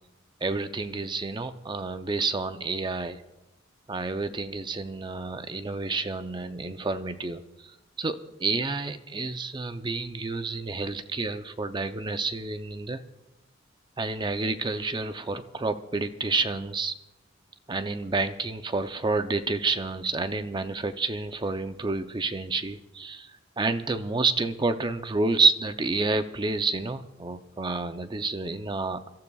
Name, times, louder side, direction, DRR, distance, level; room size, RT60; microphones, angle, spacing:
voice 1, 0.4-3.2 3.9-7.4 8.0-13.0 14.0-16.9 17.7-29.1, right 3 dB, 25° right, 10 dB, 0.6 m, -29 dB
28.5 x 13.5 x 2.4 m, 1.0 s
head